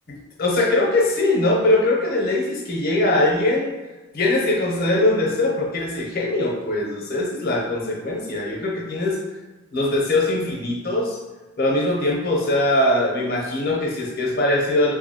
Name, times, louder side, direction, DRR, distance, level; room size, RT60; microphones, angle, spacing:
voice 1, 0.1-3.7 4.1-9.2 9.7-11.2 11.6-14.9, left 2 dB, 45° left, -1 dB, 0.5 m, -21 dB
2.7 x 2.5 x 2.7 m, 1.2 s
head